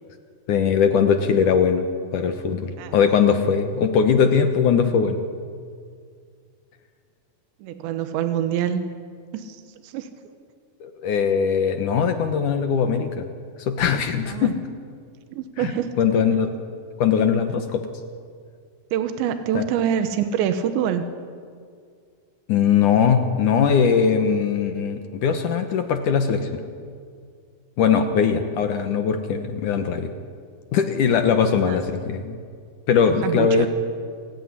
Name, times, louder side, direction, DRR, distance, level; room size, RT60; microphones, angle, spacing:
voice 1, 0.5-1.9 2.1-5.2 10.8-13.3 13.6-14.5 16.0-16.5 17.0-17.8 19.5-19.6 22.5-26.6 27.8-30.1 30.7-32.4 32.9-33.7, left 6 dB, 65° left, 7 dB, 2.1 m, -20 dB
voice 2, 7.6-8.8 9.3-10.2 14.3-14.6 15.3-15.9 18.9-21.0 31.7-31.8 33.1-33.7, right 9 dB, 85° right, 9 dB, 3.4 m, -25 dB
28.0 x 18.0 x 9.8 m, 2.2 s
omnidirectional pair, 5.1 m